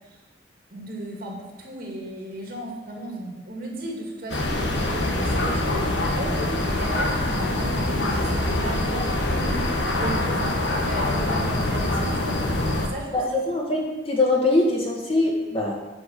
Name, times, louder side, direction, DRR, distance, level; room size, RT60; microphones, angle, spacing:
voice 1, 0.7-6.4 6.6-13.2, right 1 dB, 55° right, 0 dB, 2.2 m, -35 dB
sound 1, 4.3-12.9, left 1 dB, 75° left, 1.4 m, -24 dB
voice 2, 13.1-15.7, left 2 dB, 30° left, -2 dB, 1.8 m, -22 dB
9.2 x 5.1 x 7.1 m, 1.1 s
head